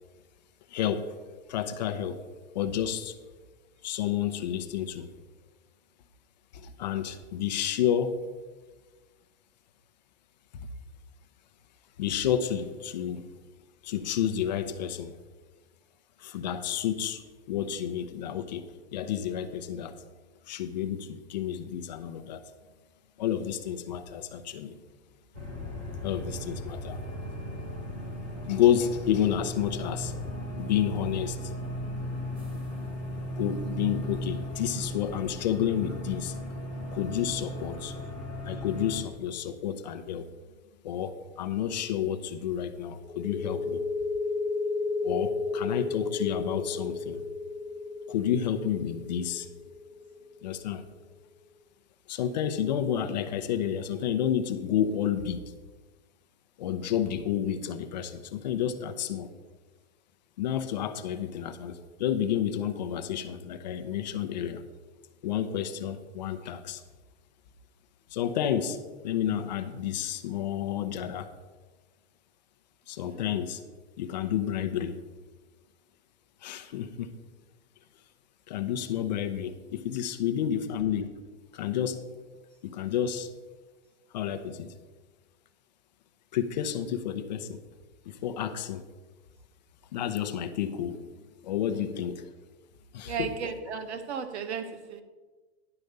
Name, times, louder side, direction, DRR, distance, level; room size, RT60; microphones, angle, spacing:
voice 1, 0.7-1.1 1.5-2.2 2.5-3.2 3.8-5.1 6.5-8.2 10.6-10.7 12.0-13.3 13.8-15.1 16.2-17.2 17.5-20.0 20.5-22.4 23.2-24.8 26.0-27.0 28.4-30.1 30.6-31.5 33.4-36.4 36.9-37.9 38.4-40.3 40.8-43.8 45.0-47.2 48.1-49.7 50.4-50.8 52.1-55.4 56.6-59.3 60.4-64.6 65.2-66.8 68.1-71.3 72.9-73.6 74.0-75.0 76.4-77.1 78.5-81.1 81.5-82.0 82.6-83.3 84.1-84.7 86.3-87.6 88.1-88.8 89.9-92.3 92.9-93.3, left 9 dB, 40° left, 10 dB, 0.7 m, -30 dB
sound 1, 25.3-39.0, equal, 10° right, 0.3 m, -36 dB
sound 2, 43.0-50.5, left 3 dB, 5° left, 1.0 m, -32 dB
voice 2, 91.7-92.0 93.0-95.0, right 6 dB, 90° right, 9 dB, 1.2 m, -36 dB
10.5 x 5.0 x 6.6 m, 1.3 s
supercardioid pair, 180°, 33 cm